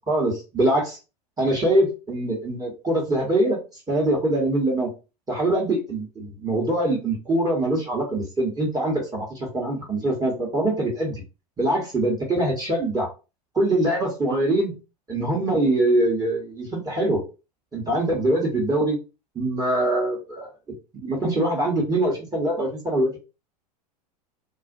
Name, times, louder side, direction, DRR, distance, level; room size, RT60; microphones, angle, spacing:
voice 1, 0.1-1.0 1.4-3.6 3.9-4.9 5.3-11.2 11.6-13.1 13.5-14.7 15.1-17.2 17.7-19.0 19.3-20.5 21.0-23.2, right 1 dB, 20° right, -2 dB, 0.9 m, -23 dB
2.4 x 2.1 x 2.5 m, 0.31 s
hypercardioid pair, 90°, 21 cm